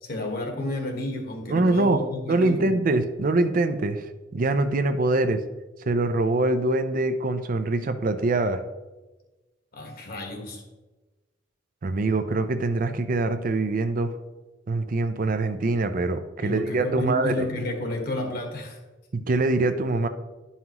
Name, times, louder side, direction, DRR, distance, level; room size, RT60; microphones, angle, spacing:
voice 1, 0.0-3.0 9.7-10.6 16.4-18.8, left 2 dB, 55° left, 2 dB, 1.4 m, -31 dB
voice 2, 1.5-2.0 2.3-4.1 4.3-5.4 5.9-8.6 11.8-14.1 14.7-17.3 19.1-20.1, right 2 dB, 50° right, 9 dB, 0.5 m, -24 dB
11.0 x 5.6 x 3.0 m, 1.1 s
head